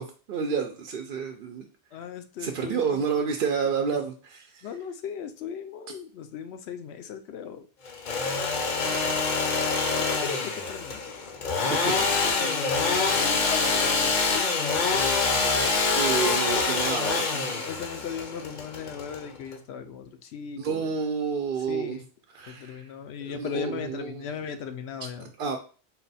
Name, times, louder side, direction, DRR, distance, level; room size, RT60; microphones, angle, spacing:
voice 1, 0.0-1.7 2.4-4.7 11.7-12.1 16.0-17.6 20.6-22.0 22.3-22.9 23.3-24.3 25.2-25.6, right 6 dB, 65° right, 4 dB, 0.7 m, -30 dB
voice 2, 1.9-3.3 3.9-4.0 4.6-7.7 8.8-9.3 10.0-11.0 11.9-16.2 17.6-21.0 21.7-22.0 22.5-25.3, left 7 dB, 80° left, 8 dB, 0.9 m, -38 dB
Engine / Sawing, 7.9-19.5, left 4 dB, 50° left, 0.7 m, -26 dB
4.0 x 2.2 x 4.0 m, 0.36 s
omnidirectional pair, 1.1 m